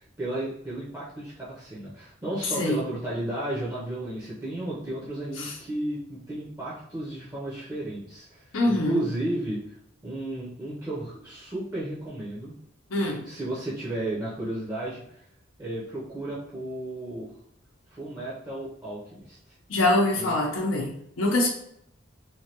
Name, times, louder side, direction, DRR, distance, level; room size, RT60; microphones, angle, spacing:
voice 1, 0.0-9.6 10.0-12.5 13.2-15.2 15.6-17.3 17.9-19.4 20.2-20.4, right 1 dB, 20° right, -8 dB, 0.6 m, -33 dB
voice 2, 8.5-9.0 12.9-13.2 19.7-21.5, left 2 dB, 85° left, -1 dB, 0.7 m, -24 dB
3.2 x 2.2 x 2.8 m, 0.73 s
head